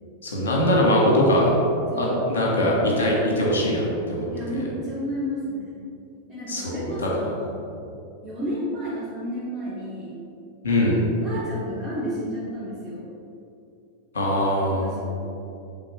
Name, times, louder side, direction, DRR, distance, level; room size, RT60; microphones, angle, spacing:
voice 1, 0.2-1.5 2.0-4.3 6.5-7.1 10.6-11.1 14.1-14.9, left 1 dB, 65° left, -2 dB, 1.5 m, -21 dB
voice 2, 1.9-2.2 4.2-5.7 6.3-7.5 8.2-10.2 11.2-13.1 14.7-15.2, equal, 15° right, -10 dB, 1.3 m, -32 dB
6.8 x 3.7 x 4.4 m, 2.7 s
figure-of-eight pair, 90°, 0 cm